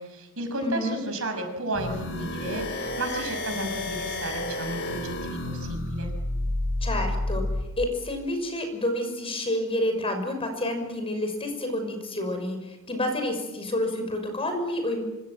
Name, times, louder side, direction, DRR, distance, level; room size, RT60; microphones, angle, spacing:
voice 1, 0.0-6.1, right 1 dB, 70° right, 6 dB, 6.3 m, -33 dB
voice 2, 0.6-1.0 6.8-7.4 7.8-15.0, left 1 dB, 25° left, 6 dB, 6.1 m, -29 dB
sound 1, 1.7-7.7, left 1 dB, 60° left, 6.5 m, -30 dB
25.5 x 25.5 x 7.6 m, 0.99 s
head